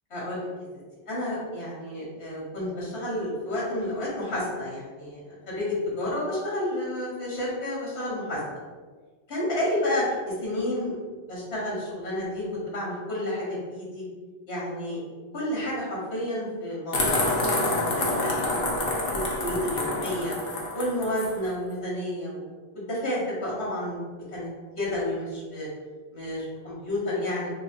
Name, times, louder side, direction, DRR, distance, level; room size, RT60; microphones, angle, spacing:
voice 1, 0.1-0.5 1.1-8.4 9.3-11.0 11.3-14.0 14.5-15.0 15.3-20.3 20.7-22.5 22.7-24.0 24.3-24.5 24.8-25.7 26.1-27.5, left 1 dB, 80° left, -6 dB, 1.5 m, -30 dB
sound 1, 16.9-21.3, left 2 dB, 65° left, 1.0 m, -27 dB
3.4 x 2.3 x 4.2 m, 1.5 s
omnidirectional pair, 1.1 m